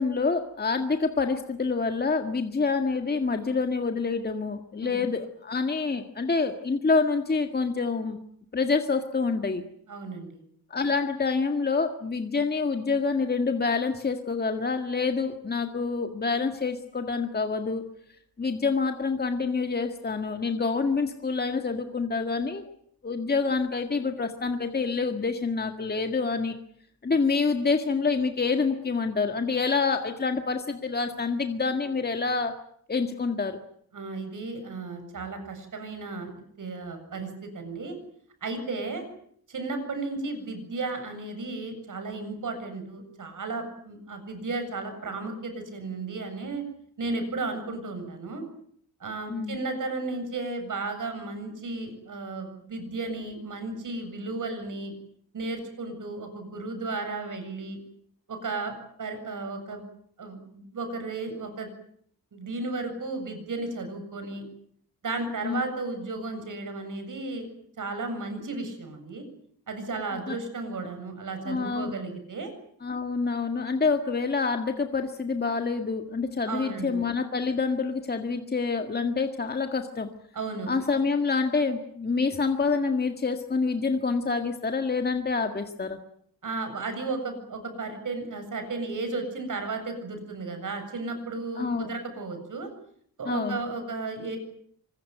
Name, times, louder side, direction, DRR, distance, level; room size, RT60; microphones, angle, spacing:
voice 1, 0.0-8.2 8.5-9.6 10.7-17.8 18.4-22.6 23.0-26.6 27.0-32.6 32.9-33.6 49.3-49.6 65.4-65.6 70.3-70.4 71.4-71.9 72.8-80.1 80.7-86.0 91.6-91.9 93.3-93.6, left 4 dB, 25° left, 6 dB, 1.8 m, -27 dB
voice 2, 9.9-10.4 33.9-36.3 36.6-38.0 38.4-39.0 39.5-46.6 47.0-48.4 49.0-54.9 55.3-57.8 58.3-59.8 60.2-61.7 62.3-64.5 65.0-67.5 67.8-69.2 69.7-72.5 76.5-77.0 80.3-80.7 86.4-92.7 93.2-94.4, right 3 dB, 55° right, 7 dB, 7.7 m, -34 dB
25.0 x 22.0 x 9.3 m, 0.65 s
wide cardioid pair, 150°, 38 cm